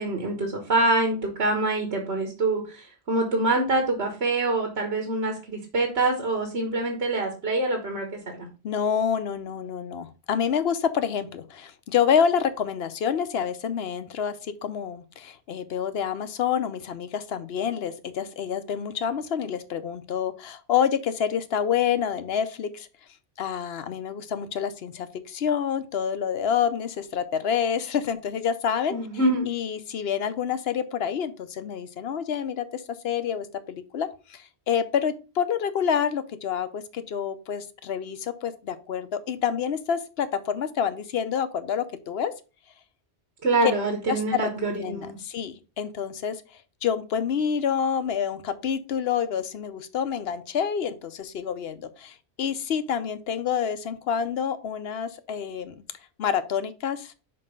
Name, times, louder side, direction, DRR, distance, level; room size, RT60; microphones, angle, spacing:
voice 1, 0.0-8.1 8.3-8.5 28.9-29.5 43.4-45.2, right 2 dB, 75° right, 3 dB, 1.6 m, -25 dB
voice 2, 8.6-22.9 23.4-29.0 29.5-42.3 43.6-43.7 44.1-55.8 56.2-57.1, left 7 dB, 70° left, 12 dB, 0.9 m, -28 dB
5.4 x 5.2 x 5.3 m, 0.33 s
omnidirectional pair, 1.1 m